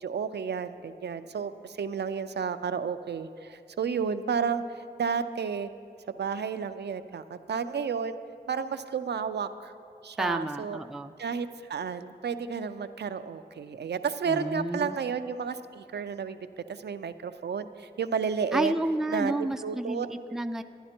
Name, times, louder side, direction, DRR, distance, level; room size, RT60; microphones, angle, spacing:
voice 1, 0.0-4.6 5.0-5.7 6.2-8.2 8.5-9.7 10.0-10.8 11.2-16.4 16.7-18.7 19.1-20.1, right 6 dB, 85° right, 10 dB, 0.4 m, -32 dB
voice 2, 10.2-11.1 14.3-15.0 18.5-20.6, right 1 dB, 5° right, 8 dB, 0.3 m, -30 dB
11.0 x 11.0 x 4.3 m, 2.5 s
wide cardioid pair, 100°, 17 cm